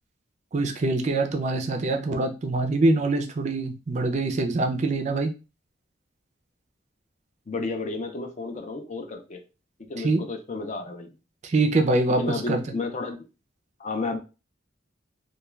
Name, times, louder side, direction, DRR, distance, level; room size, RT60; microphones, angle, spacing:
voice 1, 0.5-5.3 10.0-10.2 11.4-12.2 12.5-12.6, right 2 dB, 35° right, 4 dB, 0.4 m, -24 dB
voice 2, 7.5-9.4 9.9-11.1 12.1-13.2 13.8-14.2, left 3 dB, 40° left, 5 dB, 0.4 m, -32 dB
2.3 x 2.2 x 3.1 m, 0.30 s
head